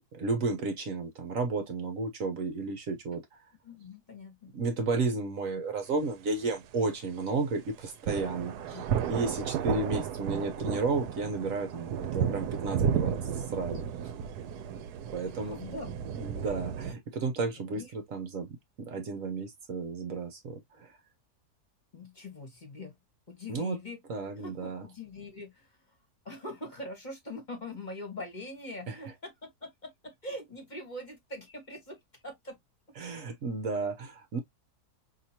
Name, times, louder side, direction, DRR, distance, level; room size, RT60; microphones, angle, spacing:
voice 1, 0.1-3.2 4.5-14.1 15.1-15.6 16.2-20.9 23.5-23.8 24.1-24.8 28.9-29.0 33.0-34.4, right 3 dB, 60° right, 1.2 m, -33 dB
voice 2, 3.6-4.5 8.6-8.8 9.6-9.7 15.2-16.0 17.6-17.9 21.9-22.9 23.3-24.0 24.4-25.8 26.2-32.6, left 1 dB, 30° left, 1.4 m, -43 dB
sound 1, 8.1-16.9, right 8 dB, 85° right, 1.2 m, -33 dB
6.0 x 2.8 x 2.8 m
omnidirectional pair, 1.7 m